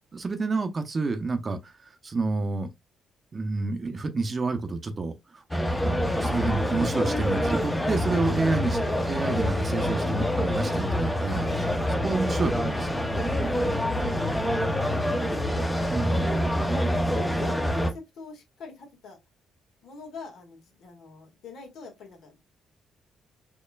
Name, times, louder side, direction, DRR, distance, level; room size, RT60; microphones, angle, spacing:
voice 1, 0.1-1.7 2.0-2.7 3.3-5.1 5.8-8.8 9.1-13.4 15.9-16.3 16.7-16.8, right 3 dB, 35° right, 0.7 m, -29 dB
sound 1, 5.5-17.9, equal, 10° left, 0.7 m, -26 dB
voice 2, 14.0-15.1 15.8-16.4 16.8-19.2 19.8-22.4, left 4 dB, 75° left, 1.8 m, -44 dB
4.3 x 3.0 x 2.3 m
cardioid pair, 90°, 0 cm